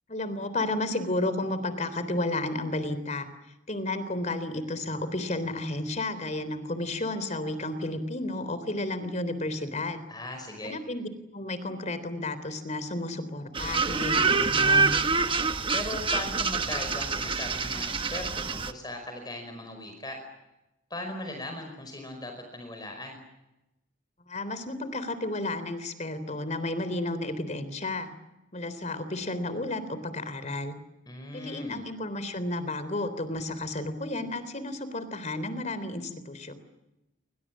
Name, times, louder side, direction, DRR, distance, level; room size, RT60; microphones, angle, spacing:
voice 1, 0.1-3.3 3.7-10.1 10.6-15.0 24.3-28.1 28.5-30.7 31.3-36.5, left 2 dB, 35° left, 13 dB, 3.6 m, -32 dB
voice 2, 10.1-10.7 15.7-20.2 20.9-23.2 31.1-31.8, left 1 dB, 20° left, 4 dB, 5.2 m, -38 dB
sound 1, 13.5-18.7, right 4 dB, 25° right, 1.2 m, -26 dB
29.0 x 25.0 x 7.5 m, 0.95 s
head